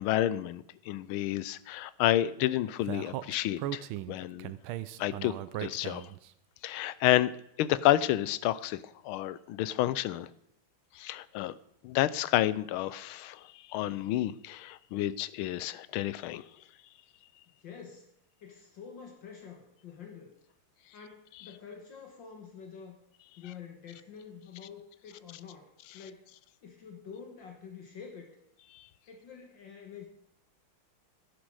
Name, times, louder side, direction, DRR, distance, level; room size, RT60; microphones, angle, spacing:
voice 1, 0.0-4.5 5.0-5.3 5.6-6.1 6.6-7.3 7.6-10.3 10.9-11.6 11.8-16.4 28.7-28.9, left 14 dB, 80° left, 17 dB, 1.4 m, -30 dB
Speech, 2.9-6.3, right 13 dB, 80° right, 1.4 m, -37 dB
voice 2, 17.6-18.1 18.4-20.3 20.9-23.0 23.4-26.3 26.6-28.3 29.1-30.1, left 6 dB, 60° left, 3 dB, 1.9 m, -47 dB
11.5 x 10.0 x 4.9 m, 0.76 s
omnidirectional pair, 2.3 m